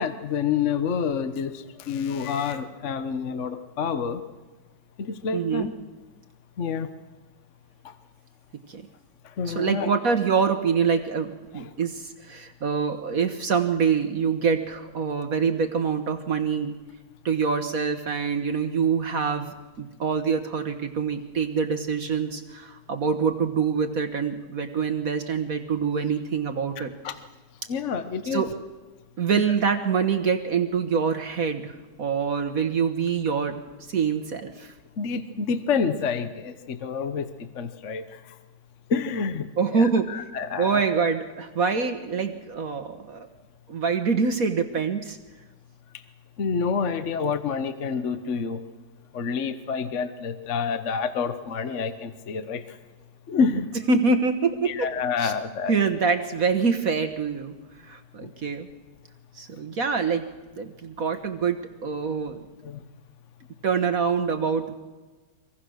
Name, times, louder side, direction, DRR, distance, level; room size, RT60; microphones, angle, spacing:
voice 1, 0.0-4.2 5.0-5.7 6.6-6.9 7.8-7.9 9.2-9.9 11.5-11.7 26.8-27.2 27.7-28.4 29.3-29.4 35.0-38.3 38.9-40.8 46.4-48.6 49.1-52.8 53.3-53.7 54.6-55.7 62.6-62.8, left 6 dB, 50° left, 9 dB, 1.3 m, -28 dB
voice 2, 5.3-5.7 8.7-8.8 9.5-16.7 17.2-26.9 28.3-28.5 29.2-33.5 33.9-34.7 39.6-40.1 40.6-43.3 43.7-45.2 53.9-54.9 55.2-55.3 55.7-57.5 57.8-58.7 59.4-60.2 60.6-62.4 63.6-64.7, right 5 dB, 55° right, 7 dB, 1.6 m, -25 dB
25.0 x 22.0 x 6.4 m, 1.3 s
omnidirectional pair, 1.9 m